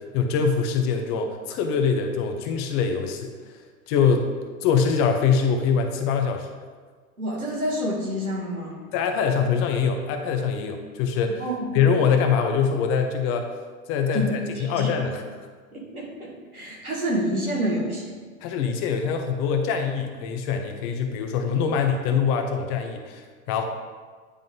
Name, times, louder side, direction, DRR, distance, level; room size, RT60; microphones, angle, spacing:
voice 1, 0.1-3.3 3.9-4.3 4.6-6.5 8.9-11.4 11.7-13.5 13.9-15.2 18.4-23.6, left 6 dB, 30° left, 5 dB, 0.7 m, -23 dB
voice 2, 7.2-8.8 11.4-11.8 14.1-14.3 14.6-14.9 15.7-18.2, equal, 85° right, -3 dB, 1.8 m, -28 dB
9.5 x 3.7 x 3.8 m, 1.5 s
figure-of-eight pair, 90°, 43 cm